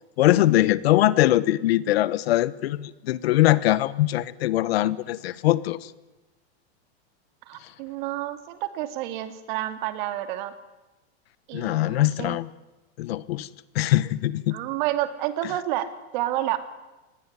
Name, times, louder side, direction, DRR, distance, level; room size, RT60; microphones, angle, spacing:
voice 1, 0.2-5.9 11.5-12.5 13.0-13.5 13.7-14.6, left 15 dB, 70° left, 17 dB, 1.2 m, -22 dB
voice 2, 7.5-10.5 11.5-12.4 14.5-16.6, right 14 dB, 50° right, 9 dB, 2.7 m, -29 dB
28.0 x 20.0 x 9.7 m, 1.1 s
supercardioid pair, 170°, 32 cm